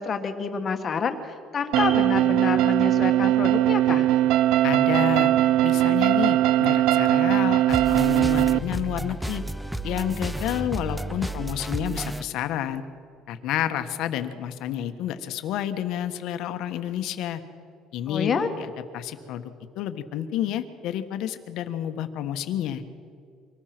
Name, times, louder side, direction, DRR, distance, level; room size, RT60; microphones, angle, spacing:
voice 1, 0.0-4.1 18.1-18.5, left 5 dB, 30° left, 7 dB, 1.6 m, -28 dB
sound 1, 1.7-8.6, right 13 dB, 75° right, 0.5 m, -20 dB
Piano, 1.8-3.2 3.5-3.7, right 2 dB, 35° right, 3.4 m, -38 dB
voice 2, 4.6-5.3 5.6-9.4 9.8-12.8 13.3-17.4 17.9-22.8, left 11 dB, 60° left, 9 dB, 1.4 m, -30 dB
sound 2, 7.7-12.2, right 1 dB, ahead, 0.6 m, -32 dB
24.5 x 19.5 x 6.1 m, 2.3 s
cardioid pair, 155°, 0 cm